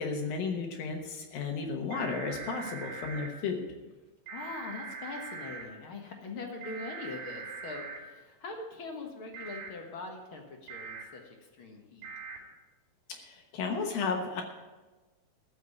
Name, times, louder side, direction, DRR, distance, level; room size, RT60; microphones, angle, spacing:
voice 1, 0.0-3.7 13.1-14.4, left 4 dB, 80° left, 3 dB, 2.9 m, -33 dB
sound 1, 1.9-3.3 4.3-5.6 6.6-8.0 9.3-9.7 10.7-11.0 12.0-12.4, right 5 dB, 60° right, 4.4 m, -42 dB
voice 2, 4.3-12.1, left 3 dB, 55° left, 3 dB, 1.6 m, -42 dB
14.0 x 5.7 x 9.6 m, 1.2 s
omnidirectional pair, 4.1 m